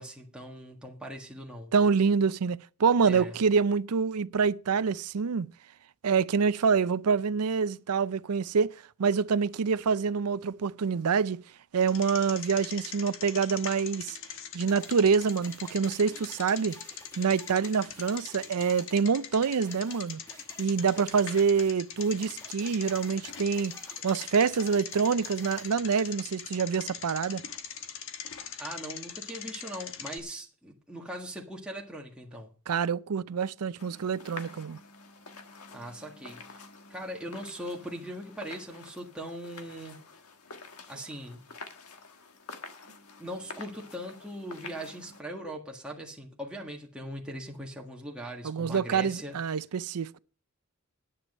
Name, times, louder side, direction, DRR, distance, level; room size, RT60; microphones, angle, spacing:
voice 1, 0.0-1.7 3.0-3.4 28.6-32.5 35.7-36.4 36.9-40.0 40.9-41.4 43.2-49.3, equal, 5° right, 1.6 m, -40 dB
voice 2, 1.7-5.5 6.0-11.4 11.7-14.2 14.5-16.8 17.2-20.2 20.6-23.8 24.0-27.4 32.7-34.8 48.4-50.2, right 5 dB, 85° right, 0.5 m, -26 dB
Bicycle, 11.8-30.2, left 8 dB, 60° left, 1.2 m, -42 dB
sound 1, 14.7-25.7, equal, 15° left, 1.5 m, -53 dB
sound 2, 33.8-45.2, left 4 dB, 80° left, 1.4 m, -48 dB
10.0 x 9.9 x 5.3 m
head